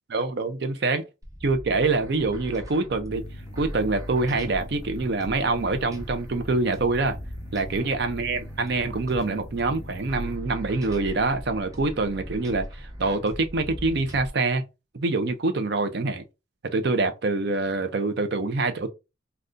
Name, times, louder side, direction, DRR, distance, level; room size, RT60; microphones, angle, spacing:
voice 1, 0.1-1.0 1.4-3.2 3.5-7.2 7.5-14.6 14.9-16.2 16.7-18.9, right 3 dB, 60° right, 0.5 m, -25 dB
sound 1, 1.2-14.3, equal, 20° right, 0.6 m, -39 dB
sound 2, 3.1-10.4, left 1 dB, 60° left, 0.6 m, -44 dB
2.6 x 2.3 x 3.6 m
head